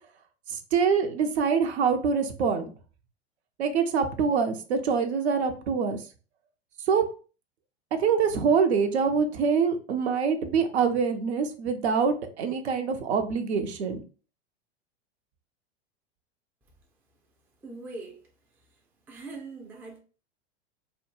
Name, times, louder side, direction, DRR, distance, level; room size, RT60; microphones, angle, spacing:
voice 1, 0.5-2.7 3.6-6.0 6.9-7.0 8.0-14.0, right 6 dB, 70° right, 0.6 m, -25 dB
voice 2, 17.6-18.2 19.1-20.0, right 3 dB, 5° right, 0.3 m, -41 dB
2.2 x 2.2 x 2.9 m
hypercardioid pair, 95°, 34 cm